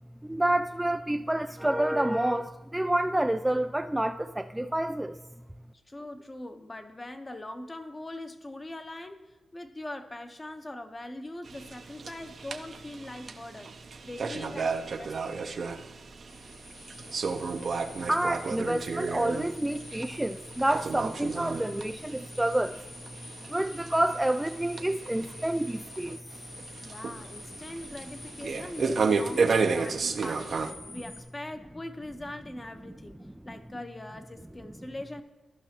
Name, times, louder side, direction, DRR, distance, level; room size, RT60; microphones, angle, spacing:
voice 1, 0.2-5.2 18.1-22.8 23.5-26.2 30.9-31.0, right 1 dB, 10° right, 0.3 m, -28 dB
voice 2, 5.9-13.7 14.0-15.4 26.9-35.2, left 1 dB, 25° left, 1.0 m, -42 dB
sound 1, 11.4-30.7, right 4 dB, 60° right, 0.7 m, -33 dB
sound 2, 16.3-31.2, left 2 dB, 85° left, 1.8 m, -48 dB
13.5 x 5.6 x 2.9 m
cardioid pair, 55°, 0 cm